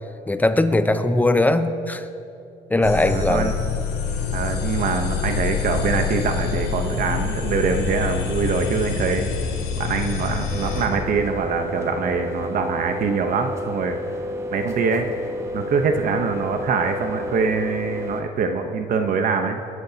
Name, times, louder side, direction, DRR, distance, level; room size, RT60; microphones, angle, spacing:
voice 1, 0.3-2.0 2.7-3.5, left 2 dB, 10° left, 10 dB, 0.7 m, -19 dB
sound 1, 2.8-10.9, left 6 dB, 80° left, 2.9 m, -26 dB
voice 2, 3.0-3.5 4.3-9.3 9.8-14.0 14.5-15.1 15.5-19.6, right 5 dB, 55° right, 5 dB, 0.9 m, -24 dB
sound 2, 6.9-8.0 8.9-10.0 10.9-12.0, right 2 dB, 80° right, 1.8 m, -41 dB
sound 3, 10.5-18.2, left 1 dB, 15° right, 1.2 m, -30 dB
23.0 x 11.0 x 2.8 m, 2.5 s
cardioid pair, 110°, 17 cm